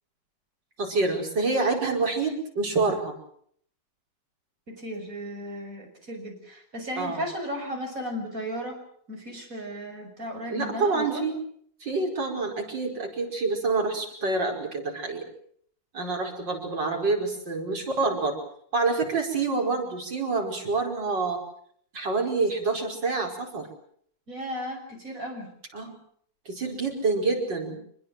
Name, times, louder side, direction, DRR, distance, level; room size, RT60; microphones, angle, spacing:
voice 1, 0.8-3.2 7.0-7.2 10.5-11.3 11.8-15.2 15.9-18.4 18.7-21.4 21.9-23.7 25.7-26.0 26.5-27.8, right 3 dB, 85° right, 1 dB, 5.7 m, -27 dB
voice 2, 4.7-8.8 9.1-11.2 24.3-25.5, equal, 50° right, 3 dB, 6.6 m, -35 dB
26.0 x 21.0 x 7.6 m, 0.65 s
omnidirectional pair, 1.9 m